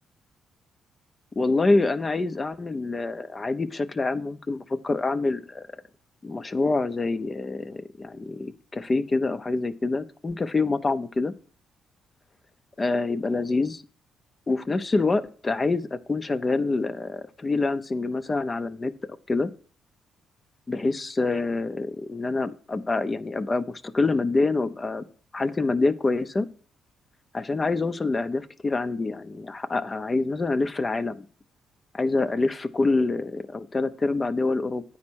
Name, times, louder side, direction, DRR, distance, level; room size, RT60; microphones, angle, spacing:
voice 1, 1.4-5.7 6.2-11.3 12.8-13.8 14.5-18.9 19.3-19.5 20.7-25.0 25.3-26.5 27.3-31.3 31.9-34.8, left 3 dB, 25° left, 0.7 m, -26 dB
9.5 x 4.3 x 6.2 m
cardioid pair, 90°, 0 cm